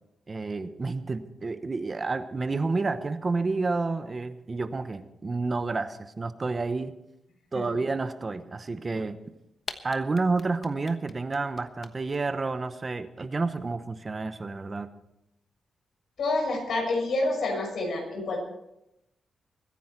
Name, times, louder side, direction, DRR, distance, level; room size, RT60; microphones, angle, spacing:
voice 1, 0.3-6.9 7.5-9.2 9.8-14.9, right 3 dB, 35° right, 11 dB, 0.9 m, -30 dB
sound 1, 9.3-9.4 9.6-12.1, left 5 dB, 50° left, 1.1 m, -40 dB
voice 2, 16.2-18.4, left 2 dB, 75° left, 1 dB, 6.3 m, -28 dB
23.0 x 10.0 x 4.5 m, 0.86 s
cardioid pair, 100°, 0 cm